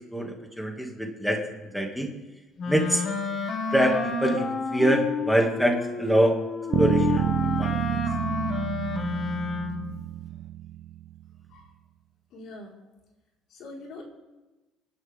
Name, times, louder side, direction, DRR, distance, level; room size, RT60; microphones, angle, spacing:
voice 1, 0.1-2.1 2.7-3.0 3.7-6.4 6.8-7.3 7.6-8.0, equal, ahead, 1 dB, 2.2 m, -25 dB
Wind instrument woodwind instrument, 2.6-10.0, left 4 dB, 45° left, 1.9 m, -30 dB
sound 1, 6.7-11.1, right 12 dB, 55° right, 0.4 m, -28 dB
voice 2, 12.3-12.7 13.5-14.0, left 2 dB, 65° left, -2 dB, 4.6 m, -43 dB
26.5 x 11.5 x 3.6 m, 1.1 s
cardioid pair, 125°, 0 cm